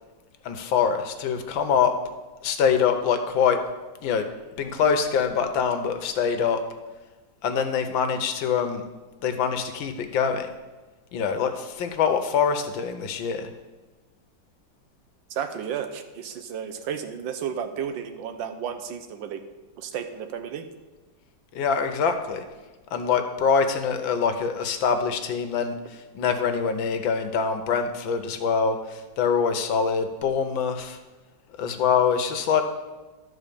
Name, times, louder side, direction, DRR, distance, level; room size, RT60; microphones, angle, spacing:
voice 1, 0.4-1.9 2.4-3.6 4.0-4.2 4.6-6.6 7.4-8.8 9.2-10.5 11.1-13.5 21.5-22.4 22.9-31.0 31.6-32.6, left 6 dB, 85° left, 7 dB, 1.6 m, -24 dB
voice 2, 15.3-19.4 19.8-20.6, right 8 dB, 80° right, 8 dB, 1.5 m, -33 dB
12.5 x 4.3 x 6.8 m, 1.2 s
omnidirectional pair, 2.1 m